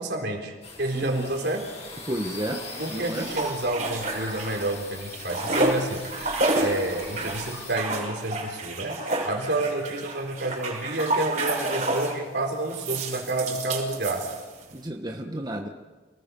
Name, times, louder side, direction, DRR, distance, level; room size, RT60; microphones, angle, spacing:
voice 1, 0.0-1.7 2.8-6.1 6.6-14.3, right 2 dB, 65° right, 2 dB, 3.8 m, -29 dB
sound 1, 0.6-7.8, left 3 dB, 40° left, 5.9 m, -41 dB
voice 2, 0.9-1.3 2.0-2.6 2.9-3.3 14.7-15.7, right 1 dB, 25° right, 3 dB, 1.3 m, -31 dB
sound 2, 2.8-4.7 5.0-12.2 12.7-14.7, right 2 dB, 45° right, 5.9 m, -30 dB
28.5 x 20.0 x 5.4 m, 1.3 s
head